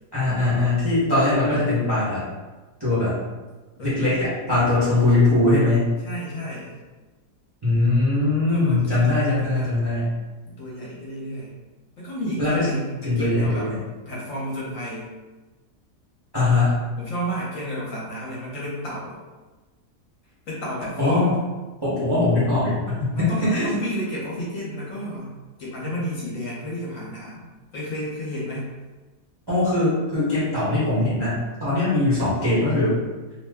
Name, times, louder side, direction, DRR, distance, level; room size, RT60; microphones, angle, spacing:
voice 1, 0.1-2.2 2.8-3.2 3.8-5.9 7.6-10.0 12.4-12.7 13.0-13.8 16.3-16.8 21.0-21.3 21.8-23.7 29.5-33.0, left 2 dB, 20° right, -11 dB, 0.6 m, -21 dB
voice 2, 3.8-4.3 4.7-4.8 6.0-6.7 8.5-9.7 10.5-11.5 12.0-13.7 14.1-15.1 17.0-19.2 20.5-21.4 23.1-25.3 25.6-27.5 27.7-28.7, equal, 60° left, -5 dB, 1.1 m, -31 dB
2.7 x 2.1 x 3.4 m, 1.2 s
omnidirectional pair, 1.7 m